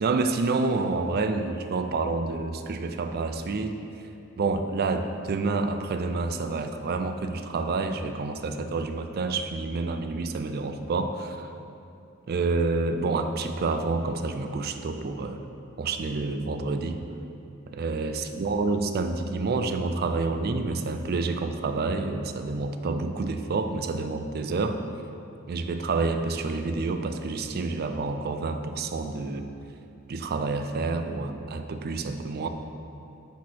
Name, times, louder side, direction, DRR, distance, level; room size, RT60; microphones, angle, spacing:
voice 1, 0.0-3.8 4.4-11.5 12.3-15.4 15.8-17.0 17.7-24.8 25.5-29.5 30.1-32.5, right 3 dB, 45° right, 7 dB, 0.4 m, -28 dB
8.3 x 3.1 x 6.1 m, 2.8 s
head